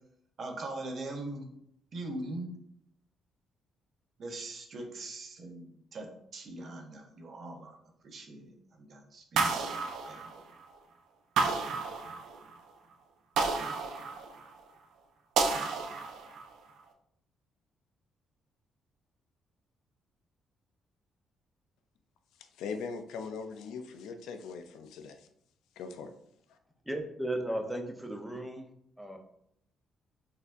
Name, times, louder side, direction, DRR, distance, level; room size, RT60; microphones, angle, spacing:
voice 1, 0.4-1.5 1.9-2.5 4.2-7.8 8.0-9.6 10.1-10.3, right 2 dB, 55° right, 3 dB, 0.7 m, -41 dB
sound 1, 9.4-10.7 11.4-12.5 13.4-14.6 15.4-16.5, right 4 dB, 80° right, 0.4 m, -31 dB
voice 2, 22.4-25.3 25.8-26.1 26.5-26.6, left 5 dB, 85° left, 7 dB, 0.4 m, -41 dB
voice 3, 26.9-28.7 29.0-29.2, right 1 dB, 5° right, 3 dB, 0.6 m, -35 dB
4.2 x 2.7 x 2.4 m, 0.72 s
cardioid pair, 90°, 0 cm